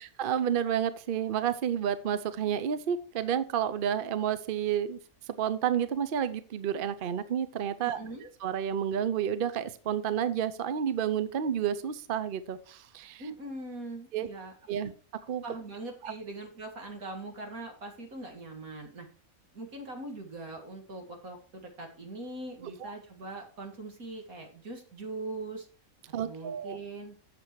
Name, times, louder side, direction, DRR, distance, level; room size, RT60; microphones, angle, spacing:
voice 1, 0.0-5.0 5.4-8.0 8.4-13.2 14.1-14.3 14.7-14.9 15.3-15.4 16.0-16.1 22.8-22.9 26.1-26.8, right 9 dB, 50° right, 13 dB, 0.7 m, -30 dB
voice 2, 7.8-8.3 13.2-14.5 14.8-14.9 15.4-19.1 19.5-25.7 26.2-27.1, right 2 dB, 90° right, 2 dB, 2.6 m, -41 dB
8.2 x 6.8 x 4.6 m, 0.41 s
omnidirectional pair, 1.4 m